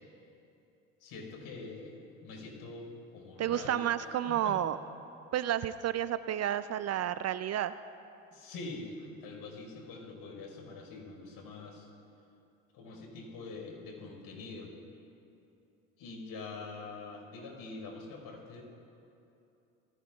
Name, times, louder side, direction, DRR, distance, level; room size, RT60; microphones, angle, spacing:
voice 1, 1.0-4.6 8.3-11.9 12.7-14.7 16.0-18.6, left 3 dB, 60° left, 1 dB, 4.8 m, -45 dB
voice 2, 3.4-4.8 5.3-7.8, right 11 dB, 40° right, 14 dB, 0.5 m, -31 dB
27.0 x 20.0 x 2.4 m, 2.8 s
hypercardioid pair, 70°, 41 cm